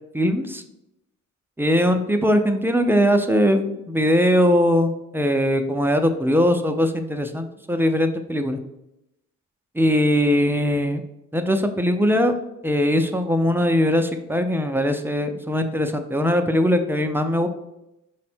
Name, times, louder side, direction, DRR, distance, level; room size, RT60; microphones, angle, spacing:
voice 1, 0.1-0.6 1.6-8.6 9.7-11.0 11.3-12.3 12.6-17.5, equal, 5° right, 7 dB, 0.3 m, -20 dB
5.3 x 2.1 x 4.2 m, 0.87 s
cardioid pair, 85°, 32 cm